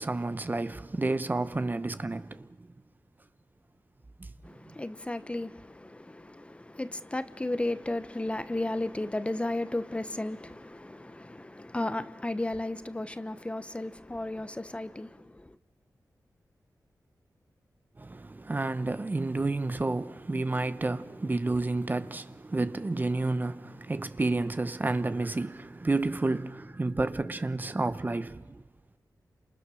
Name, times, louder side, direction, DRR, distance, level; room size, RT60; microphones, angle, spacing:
voice 1, 0.0-2.7 4.2-4.3 4.7-4.8 18.0-28.6, right 2 dB, 30° right, 0.8 m, -30 dB
voice 2, 4.4-15.6, left 2 dB, 15° left, 0.9 m, -34 dB
29.5 x 27.5 x 6.4 m
wide cardioid pair, 95°, 7 cm